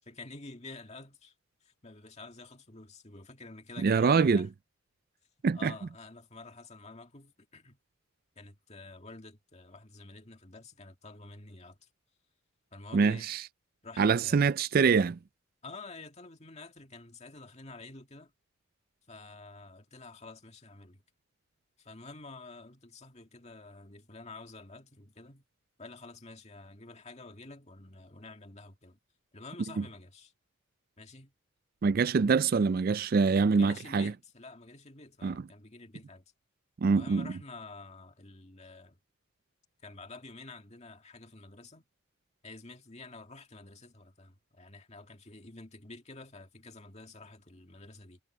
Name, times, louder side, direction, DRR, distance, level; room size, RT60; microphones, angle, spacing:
voice 1, 0.0-1.3 1.6-4.5 5.5-7.8 8.4-11.9 12.7-13.3 13.8-14.4 15.6-18.3 19.1-21.0 21.8-25.4 25.8-29.0 29.3-30.3 31.0-31.3 33.3-36.2 36.9-39.0 39.8-41.8 42.4-48.2, left 3 dB, 30° left, 2.1 m, -49 dB
voice 2, 3.8-4.5 5.4-5.7 12.9-13.4 14.0-15.2 29.8-29.9 31.8-34.1 35.2-35.4 36.8-37.2, right 5 dB, 45° right, 0.3 m, -25 dB
head